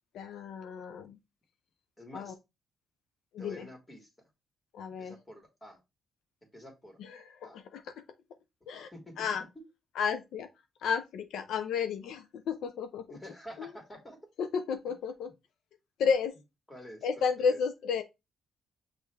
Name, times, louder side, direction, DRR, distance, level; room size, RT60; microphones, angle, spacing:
voice 1, 0.1-1.2 2.1-2.3 3.3-3.7 4.7-5.1 7.0-8.0 8.7-8.9 9.2-9.4 10.0-10.5 10.8-13.2 13.6-13.7 14.4-15.3 16.0-16.3 17.0-18.0, left 6 dB, 75° left, 0.5 m, -32 dB
voice 2, 2.0-2.4 3.4-4.1 5.0-5.8 6.5-7.0 7.4-7.6 8.9-9.3 13.1-14.2 15.2-15.3 16.7-17.6, equal, 15° left, 1.6 m, -48 dB
6.3 x 2.5 x 3.3 m
cardioid pair, 130°, 0 cm